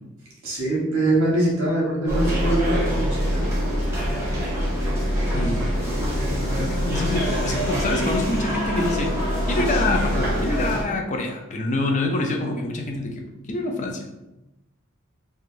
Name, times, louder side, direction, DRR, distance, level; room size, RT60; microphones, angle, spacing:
voice 1, 0.4-3.5, right 1 dB, 60° right, -4 dB, 1.2 m, -23 dB
sound 1, 2.1-10.8, equal, 15° right, 0.7 m, -24 dB
voice 2, 5.0-6.3 6.6-14.1, left 2 dB, 35° left, 2 dB, 0.4 m, -27 dB
3.2 x 2.4 x 2.5 m, 0.95 s
head